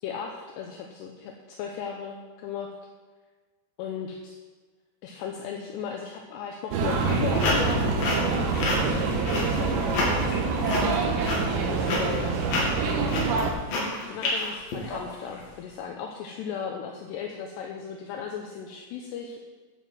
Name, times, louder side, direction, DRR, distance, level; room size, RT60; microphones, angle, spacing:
voice 1, 0.0-2.7 3.8-4.4 5.0-7.9 8.7-10.3 11.6-12.4 14.1-19.4, left 7 dB, 80° left, 1 dB, 2.5 m, -36 dB
sound 1, 6.7-13.5, right 4 dB, 85° right, 4.0 m, -26 dB
sound 2, 6.8-15.4, left 2 dB, 50° left, 3.9 m, -29 dB
11.5 x 7.5 x 7.5 m, 1.4 s
omnidirectional pair, 5.8 m